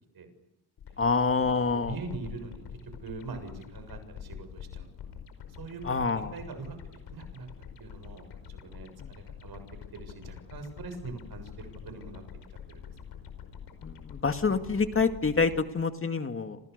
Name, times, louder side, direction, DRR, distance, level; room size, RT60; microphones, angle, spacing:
sound 1, 0.8-15.6, left 8 dB, 85° left, 5.2 m, -46 dB
voice 1, 1.0-2.0 5.8-6.3 9.0-9.1 13.8-16.6, left 4 dB, 35° left, 7 dB, 2.2 m, -27 dB
voice 2, 1.9-4.9 5.6-7.5 7.8-9.6 9.9-12.2 12.7-12.9, right 4 dB, 65° right, 8 dB, 7.1 m, -43 dB
29.5 x 28.5 x 6.8 m, 0.86 s
cardioid pair, 115°, 39 cm